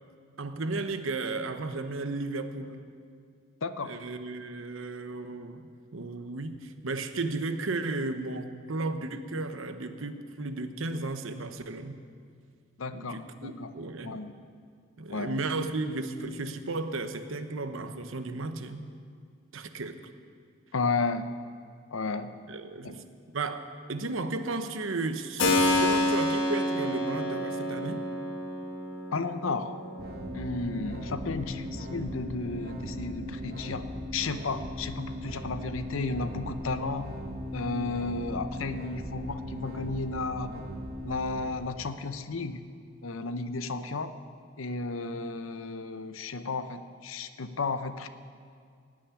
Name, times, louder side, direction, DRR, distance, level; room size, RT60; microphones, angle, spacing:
voice 1, 0.4-2.8 3.8-12.0 12.9-14.2 15.0-18.8 19.5-20.0 22.5-23.0 23.3-28.0, right 3 dB, 80° right, 8 dB, 0.9 m, -34 dB
voice 2, 3.6-4.0 12.8-13.7 14.0-14.3 15.1-15.4 20.7-21.3 21.9-22.3 22.8-23.1 29.1-29.8 30.3-37.1 37.5-40.5 41.0-42.6 43.0-44.1 44.6-48.1, left 3 dB, 85° left, 10 dB, 0.8 m, -33 dB
Keyboard (musical), 25.4-34.0, left 1 dB, 70° left, 2.0 m, -31 dB
sound 1, 30.0-41.5, equal, 45° right, 1.7 m, -38 dB
17.5 x 6.3 x 9.9 m, 2.2 s
head